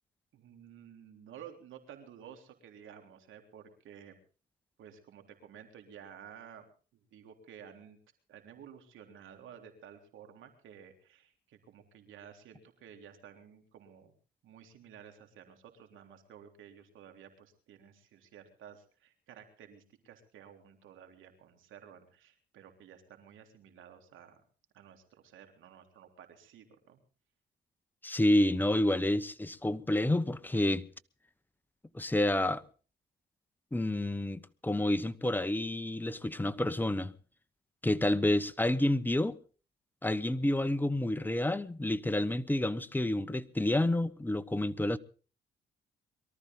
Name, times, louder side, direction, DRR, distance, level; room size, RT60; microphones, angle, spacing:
voice 1, 0.3-4.2 4.8-6.7 6.9-8.0 8.3-14.1 14.4-24.4 24.7-27.0, right 8 dB, 80° right, 3.5 m, -53 dB
voice 2, 28.0-30.9 31.9-32.6 33.7-37.1 37.8-39.4 40.0-45.0, left 1 dB, 10° left, 1.1 m, -29 dB
23.5 x 13.5 x 3.8 m
cardioid pair, 90°, 20 cm